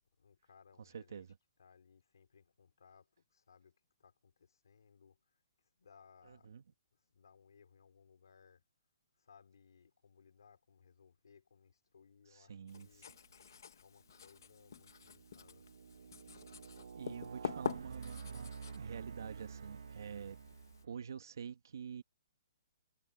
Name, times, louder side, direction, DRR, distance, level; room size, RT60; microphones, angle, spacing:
voice 1, 0.2-1.3 1.6-5.4 5.8-6.5 6.9-8.6 9.2-13.1 13.7-15.7, left 6 dB, 75° left, 4.7 m, -64 dB
voice 2, 0.9-1.3 6.3-6.6 12.3-13.0 16.9-20.4 20.8-22.0, right 7 dB, 60° right, 1.4 m, -47 dB
Writing, 12.7-20.8, left 7 dB, 55° left, 1.7 m, -47 dB
sound 1, 13.3-13.6 14.2-21.0, right 6 dB, 80° right, 1.2 m, -50 dB
hypercardioid pair, 180°, 2 cm